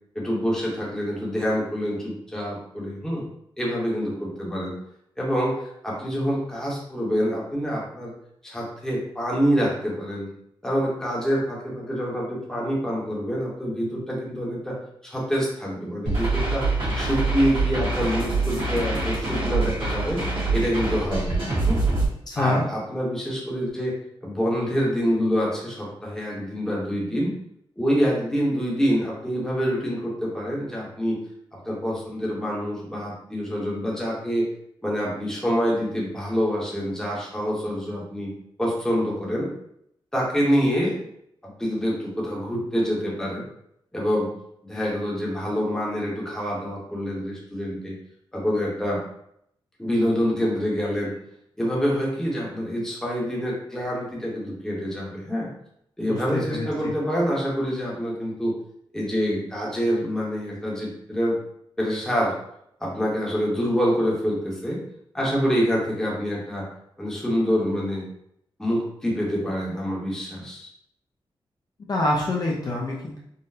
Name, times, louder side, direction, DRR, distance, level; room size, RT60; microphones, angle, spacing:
voice 1, 0.1-3.2 3.6-4.7 5.2-8.1 8.4-10.3 10.6-14.8 15.0-16.6 16.9-20.2 20.5-21.8 22.3-23.9 24.2-27.3 27.8-31.2 31.5-34.5 34.8-38.3 38.6-39.5 40.1-41.0 41.6-43.4 43.9-44.3 44.6-47.9 48.3-49.0 49.8-51.1 51.6-55.5 56.0-58.5 58.9-61.4 61.8-62.3 62.8-64.8 65.1-66.6 67.0-68.0 68.6-70.7, equal, 5° left, -4 dB, 0.8 m, -26 dB
sound 1, 16.1-22.1, right 3 dB, 70° right, 1.3 m, -25 dB
voice 2, 22.3-22.6 56.1-56.9 71.9-73.2, left 1 dB, 45° left, -3 dB, 0.5 m, -26 dB
3.8 x 2.0 x 2.7 m, 0.74 s
wide cardioid pair, 145°, 9 cm